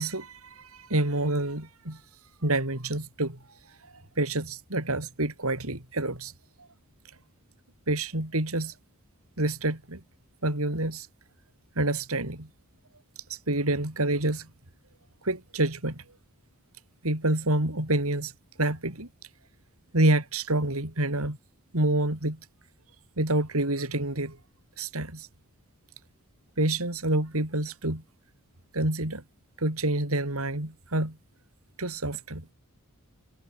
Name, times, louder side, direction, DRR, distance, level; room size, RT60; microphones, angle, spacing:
voice 1, 0.0-2.0 2.4-3.4 4.2-6.3 7.9-8.7 9.4-10.0 10.4-11.1 11.8-12.5 13.5-14.5 15.2-16.0 17.0-18.3 18.6-19.1 19.9-21.4 21.7-22.4 23.2-24.4 24.8-25.3 26.6-28.0 28.7-29.2 29.6-31.2 31.8-32.5, right 1 dB, 75° right, 4.8 m, -27 dB
head